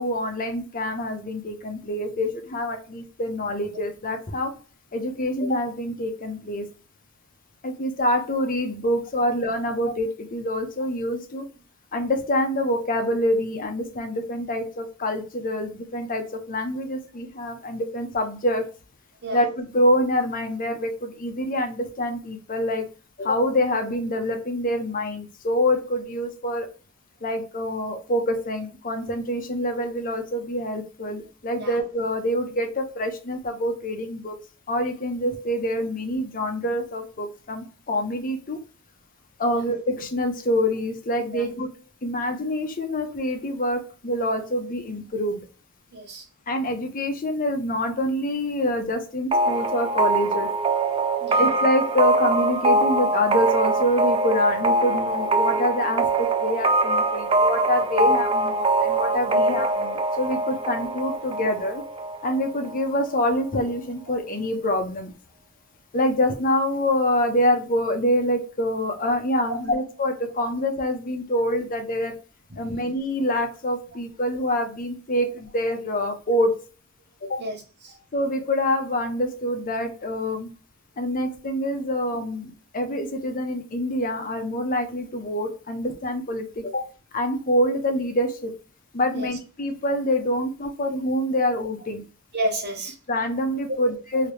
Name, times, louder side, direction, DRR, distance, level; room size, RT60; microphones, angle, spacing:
voice 1, 0.0-4.5 4.9-6.7 7.6-11.5 11.9-18.7 19.3-22.9 23.2-26.7 27.2-34.4 34.7-38.6 39.4-41.7 42.0-45.5 46.5-50.5 51.4-61.8 62.2-65.1 65.9-72.1 72.6-76.5 77.2-77.4 78.1-80.5 81.0-86.8 87.1-88.5 88.9-92.1 93.1-94.3, left 1 dB, 40° left, 0.7 m, -26 dB
voice 2, 45.9-46.2 51.2-51.5 59.4-59.5 69.5-69.6 72.5-72.8 77.4-77.9 86.7-86.8 89.1-89.3 92.3-92.9, right 1 dB, 55° right, 1.1 m, -31 dB
sound 1, 49.3-62.8, right 2 dB, 25° right, 0.4 m, -23 dB
3.0 x 2.8 x 3.2 m
head